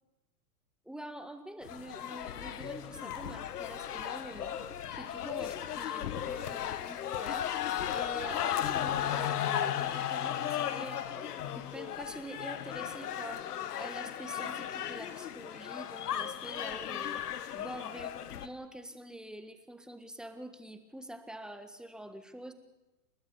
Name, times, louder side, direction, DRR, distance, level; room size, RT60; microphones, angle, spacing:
voice 1, 0.8-4.6 4.9-13.5 13.8-17.2 17.5-18.1 18.4-22.5, right 1 dB, ahead, 7 dB, 1.5 m, -46 dB
sound 1, 1.6-18.5, left 10 dB, 80° left, 1.8 m, -35 dB
29.5 x 13.0 x 8.2 m, 1.1 s
hypercardioid pair, 140°, 46 cm